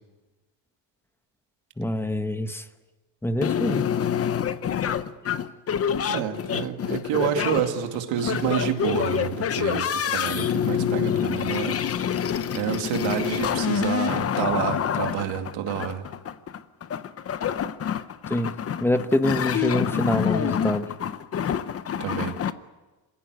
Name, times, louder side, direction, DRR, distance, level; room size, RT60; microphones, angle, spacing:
voice 1, 1.8-2.7 3.2-3.9 18.3-18.5 18.8-20.9, left 1 dB, 5° left, 9 dB, 0.9 m, -25 dB
sound 1, 3.4-22.5, left 8 dB, 30° left, 0.7 m, -27 dB
voice 2, 6.1-11.8 12.5-16.1 22.0-22.4, right 10 dB, 85° right, 5 dB, 2.5 m, -28 dB
26.5 x 17.0 x 9.5 m, 1.2 s
cardioid pair, 165°, 45 cm